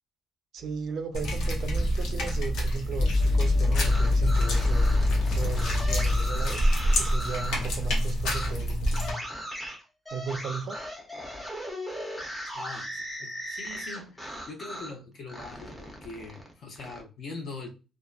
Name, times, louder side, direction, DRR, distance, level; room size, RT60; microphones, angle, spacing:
voice 1, 0.5-4.9 5.3-6.7 7.0-8.8 10.1-10.8, right 5 dB, 60° right, 0.4 m, -36 dB
sound 1, 1.1-9.1, equal, 90° left, 0.7 m, -28 dB
sound 2, 1.6-1.7 2.8-6.5, left 3 dB, 20° left, 1.0 m, -25 dB
sound 3, 3.6-7.7 8.2-8.5 8.9-15.0 15.3-17.0, equal, 5° left, 0.6 m, -38 dB
voice 2, 12.5-17.7, left 3 dB, 55° left, 0.7 m, -42 dB
2.6 x 2.2 x 2.2 m
cardioid pair, 145°, 0 cm